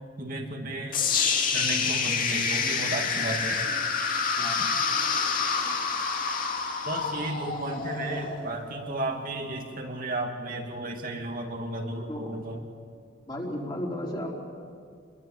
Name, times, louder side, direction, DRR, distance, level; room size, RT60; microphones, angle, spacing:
voice 1, 0.2-1.0 1.5-3.6 6.8-12.6, right 2 dB, 50° right, 2 dB, 2.4 m, -33 dB
sound 1, 0.9-9.0, left 5 dB, 50° left, 2.4 m, -28 dB
voice 2, 13.3-14.4, equal, 25° left, -2 dB, 3.9 m, -34 dB
26.5 x 22.0 x 7.4 m, 2.2 s
head